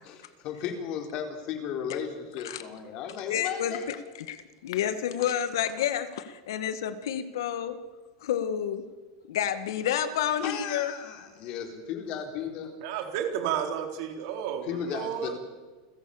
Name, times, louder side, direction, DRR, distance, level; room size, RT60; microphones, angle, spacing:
voice 1, 0.0-3.9 10.3-12.7 14.6-15.4, left 8 dB, 45° left, 5 dB, 3.9 m, -35 dB
voice 2, 3.3-7.8 8.2-8.8 9.3-10.9, left 9 dB, 85° left, 11 dB, 1.7 m, -30 dB
voice 3, 12.8-15.3, right 9 dB, 60° right, 4 dB, 4.0 m, -32 dB
28.5 x 15.0 x 7.1 m, 1.4 s
supercardioid pair, 155°, 2 cm